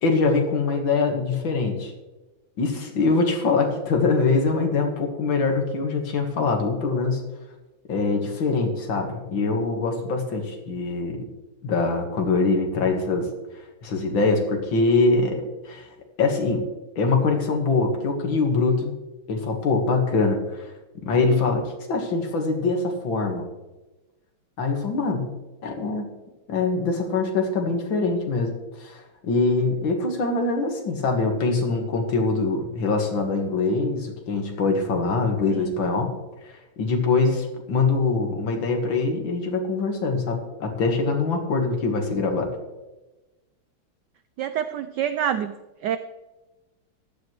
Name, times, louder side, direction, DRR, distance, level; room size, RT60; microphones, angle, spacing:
voice 1, 0.0-1.9 2.6-7.2 7.9-11.3 11.6-13.3 13.8-15.9 16.2-16.6 17.0-19.0 19.3-20.7 21.0-23.5 24.6-25.3 25.6-26.1 26.5-28.5 28.8-36.1 36.8-42.5, left 3 dB, 65° left, 3 dB, 2.3 m, -23 dB
voice 2, 44.4-45.5 45.8-46.0, right 9 dB, 80° right, 10 dB, 0.9 m, -26 dB
15.0 x 12.0 x 3.2 m, 1.1 s
omnidirectional pair, 2.4 m